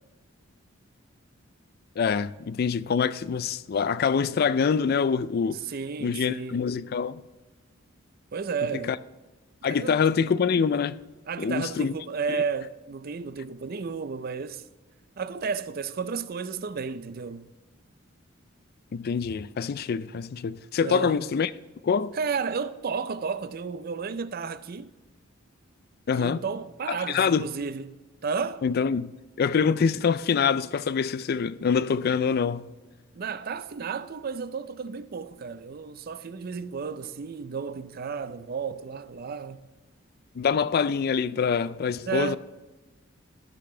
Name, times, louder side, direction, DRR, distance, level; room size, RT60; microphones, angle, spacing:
voice 1, 2.0-5.6 6.0-7.2 8.9-9.0 9.6-11.0 11.4-11.9 18.9-21.5 21.8-22.1 26.1-26.4 26.9-27.5 28.6-29.1 29.4-32.7 40.4-42.4, left 6 dB, 50° left, 0.3 m, -25 dB
voice 2, 5.7-6.6 8.3-9.0 9.7-10.0 11.3-14.7 15.2-17.5 20.8-21.1 22.1-24.9 26.2-28.6 33.1-39.7 42.1-42.4, right 5 dB, 45° right, 0.4 m, -32 dB
13.5 x 6.7 x 3.8 m
head